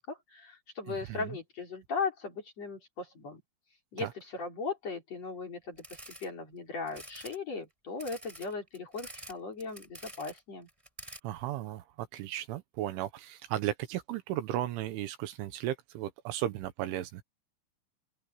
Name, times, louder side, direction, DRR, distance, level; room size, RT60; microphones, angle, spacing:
voice 1, 0.0-3.4 3.9-10.7, left 4 dB, 35° left, 4.8 m, -38 dB
voice 2, 0.9-1.3 4.0-4.1 11.2-17.2, right 13 dB, 75° right, 3.4 m, -35 dB
sound 1, 5.8-6.3 6.9-7.4 8.0-9.3 9.6-10.4 10.7-11.2, right 1 dB, 5° right, 6.0 m, -47 dB
open air
omnidirectional pair, 5.8 m